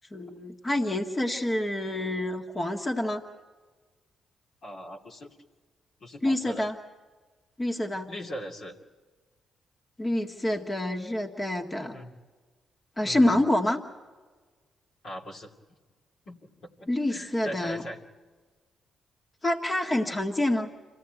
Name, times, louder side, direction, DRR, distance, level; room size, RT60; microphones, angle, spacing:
voice 1, 0.1-3.2 6.2-6.8 7.6-8.1 10.0-11.9 13.0-13.8 16.9-17.8 19.4-20.7, left 1 dB, 30° left, 2 dB, 1.9 m, -27 dB
voice 2, 4.6-5.3 6.0-6.6 8.1-8.8 11.8-12.1 13.0-13.4 15.0-15.5 16.3-16.5 16.8-18.0, equal, 60° left, -1 dB, 2.6 m, -40 dB
27.0 x 16.0 x 9.2 m, 1.4 s
hypercardioid pair, 45°, 0 cm